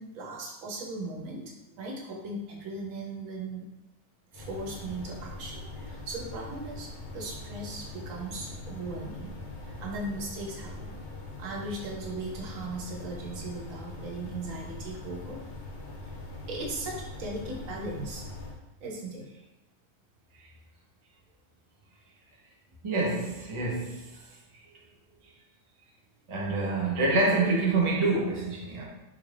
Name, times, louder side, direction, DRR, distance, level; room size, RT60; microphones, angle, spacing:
voice 1, 0.0-1.5 1.8-3.7 4.3-9.3 9.8-11.0 11.4-15.4 16.5-18.3 18.8-19.2, right 2 dB, 85° right, -1 dB, 1.1 m, -38 dB
sound 1, 4.3-18.6, left 2 dB, 50° left, 0.6 m, -42 dB
voice 2, 22.8-24.2 26.3-28.8, right 2 dB, 30° right, -2 dB, 0.6 m, -27 dB
3.8 x 2.5 x 3.2 m, 0.94 s
omnidirectional pair, 1.4 m